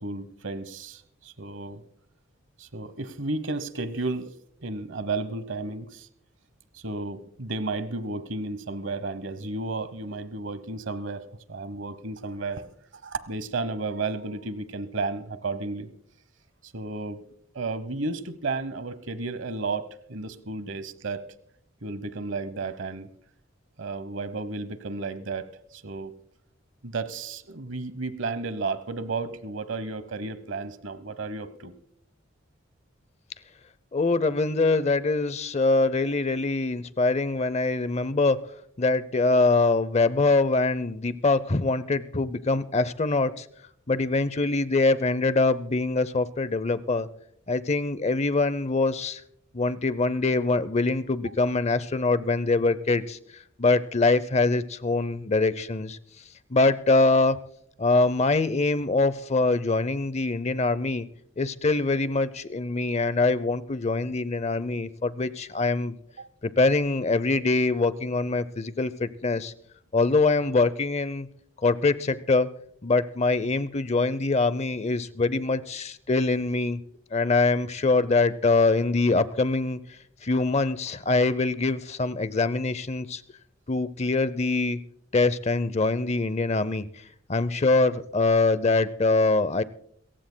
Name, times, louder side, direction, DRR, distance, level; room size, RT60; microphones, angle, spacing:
voice 1, 0.0-1.8 2.6-4.3 4.6-6.1 6.7-12.7 13.0-15.9 16.6-17.2 17.5-21.2 21.8-23.1 23.8-26.1 26.8-31.8 66.2-66.3, right 3 dB, 65° right, 14 dB, 1.0 m, -33 dB
voice 2, 33.9-38.4 38.8-43.4 43.9-47.1 47.5-49.2 49.5-53.2 53.6-56.0 56.5-57.4 57.8-61.1 61.4-66.0 66.4-69.5 69.9-71.3 71.6-72.5 72.8-76.8 77.1-79.8 80.2-83.2 83.7-84.8 85.1-86.8 87.3-89.6, left 3 dB, 35° left, 16 dB, 0.6 m, -24 dB
28.0 x 15.0 x 2.2 m, 0.68 s
head